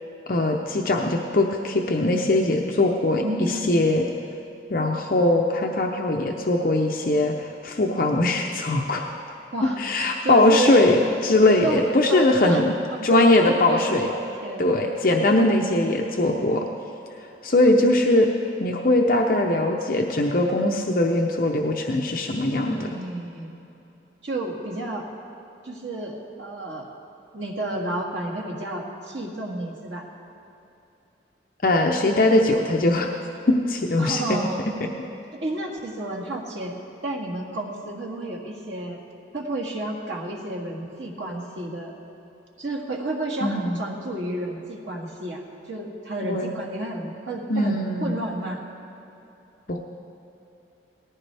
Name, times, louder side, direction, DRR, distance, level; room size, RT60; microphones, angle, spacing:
voice 1, 0.3-4.1 4.7-9.1 9.8-12.7 13.0-14.1 14.6-16.7 17.4-18.3 18.6-23.0 31.6-33.1 33.5-34.2 43.4-43.8 46.2-46.5 47.5-48.2 49.7-49.8, left 2 dB, 50° left, 1 dB, 0.7 m, -21 dB
voice 2, 3.2-3.8 9.5-10.8 11.6-11.8 12.1-12.6 12.9-14.8 22.7-23.5 24.2-25.1 25.6-26.9 27.3-30.1 34.0-34.6 35.4-36.7 37.0-39.0 39.3-41.9 42.6-48.6, right 2 dB, 85° right, -1 dB, 2.0 m, -31 dB
18.5 x 14.5 x 3.4 m, 2.9 s
head